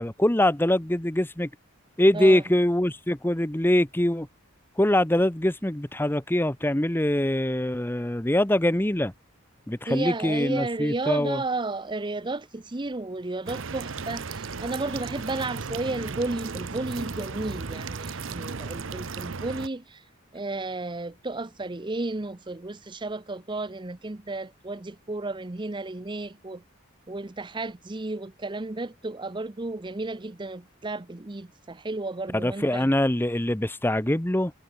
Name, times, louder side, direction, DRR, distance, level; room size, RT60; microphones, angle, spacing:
voice 1, 0.0-1.5 2.0-4.3 4.8-9.1 9.7-11.4 32.3-34.5, left 1 dB, 10° left, 0.9 m, -23 dB
voice 2, 9.9-20.0 20.3-26.6 27.1-32.9, right 2 dB, 20° right, 0.7 m, -33 dB
sound 1, 13.5-19.7, right 4 dB, 65° right, 0.9 m, -35 dB
head